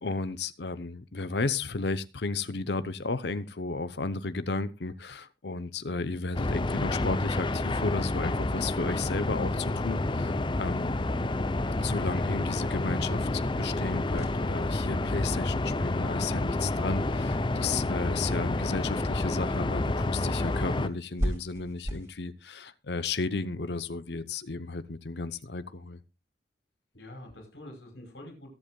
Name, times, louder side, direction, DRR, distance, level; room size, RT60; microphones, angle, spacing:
voice 1, 0.0-10.9 11.8-26.0, left 3 dB, 70° left, 13 dB, 0.8 m, -33 dB
sound 1, 6.3-20.9, left 2 dB, 25° left, 0.6 m, -29 dB
sound 2, 14.1-22.1, equal, 20° right, 3.9 m, -40 dB
voice 2, 26.9-28.5, left 1 dB, 85° left, 3 dB, 5.5 m, -46 dB
22.5 x 8.1 x 2.3 m, 0.27 s
head